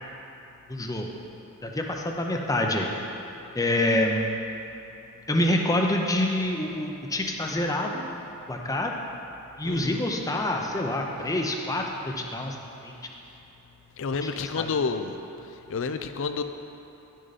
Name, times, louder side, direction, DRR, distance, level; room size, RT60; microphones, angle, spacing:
voice 1, 0.7-1.1 1.6-2.9 3.5-4.3 5.3-8.1 8.5-8.9 9.6-12.6 12.8-13.0 14.2-14.3 14.6-14.7, left 1 dB, 15° left, 1 dB, 0.6 m, -26 dB
voice 2, 9.6-10.0 14.0-15.2 15.7-16.4, left 5 dB, 60° left, 9 dB, 0.4 m, -29 dB
10.5 x 6.4 x 4.1 m, 2.9 s
head